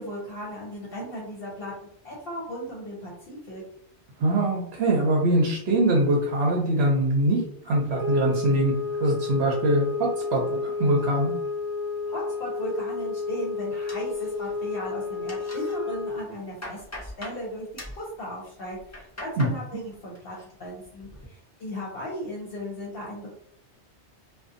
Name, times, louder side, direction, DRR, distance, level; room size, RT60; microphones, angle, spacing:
voice 1, 0.0-3.6 12.1-17.7 17.9-23.3, equal, 60° left, -4 dB, 0.8 m, -36 dB
voice 2, 4.2-8.7 9.0-11.3 19.4-19.5, right 1 dB, 70° right, -2 dB, 0.8 m, -23 dB
sound 1, 7.9-16.3, left 4 dB, 20° right, 0.7 m, -31 dB
sound 2, 13.9-14.7 15.0-15.8 16.2-17.4 17.8-18.1 18.7-19.6 19.9-20.5 20.8-21.3, left 1 dB, 20° left, 0.4 m, -41 dB
2.6 x 2.2 x 2.5 m, 0.70 s
omnidirectional pair, 1.2 m